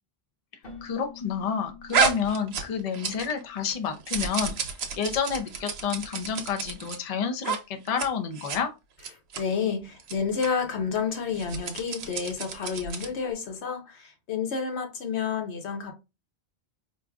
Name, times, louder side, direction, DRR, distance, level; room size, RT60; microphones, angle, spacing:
Keyboard (musical), 0.6-4.3, left 5 dB, 60° left, 1.3 m, -49 dB
voice 1, 0.8-4.5 5.0-8.7, left 6 dB, 45° left, 0.6 m, -29 dB
sound 1, 1.9-3.4 3.7-7.0 7.4-7.6 7.9-8.1 8.4-8.6 9.0-9.4 10.0-10.1 10.4-10.5 11.3-13.2, right 6 dB, 75° right, 0.9 m, -30 dB
voice 2, 9.4-15.9, left 6 dB, 85° left, 1.1 m, -30 dB
4.6 x 2.6 x 2.3 m
omnidirectional pair, 1.1 m